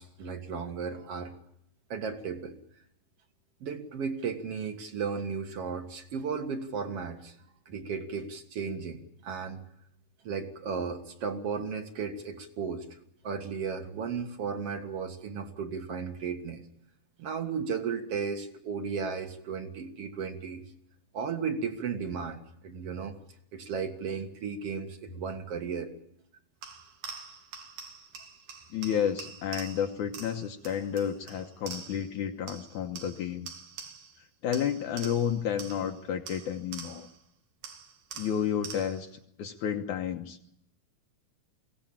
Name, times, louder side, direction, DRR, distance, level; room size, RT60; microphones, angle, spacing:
voice 1, 0.0-1.3 1.9-2.6 3.6-7.4 7.7-9.6 10.2-12.9 13.2-16.6 17.2-20.6 21.1-23.2 23.5-25.9, right 5 dB, 50° right, 6 dB, 2.6 m, -35 dB
sound 1, 26.6-32.2 32.5-34.2 34.5-37.2 37.6-39.1, right 6 dB, 85° right, 3.9 m, -45 dB
voice 2, 28.7-33.5 34.4-37.1 38.2-39.1 39.4-40.5, left 8 dB, 70° left, 4 dB, 2.5 m, -31 dB
22.5 x 17.5 x 8.8 m, 0.76 s
omnidirectional pair, 3.8 m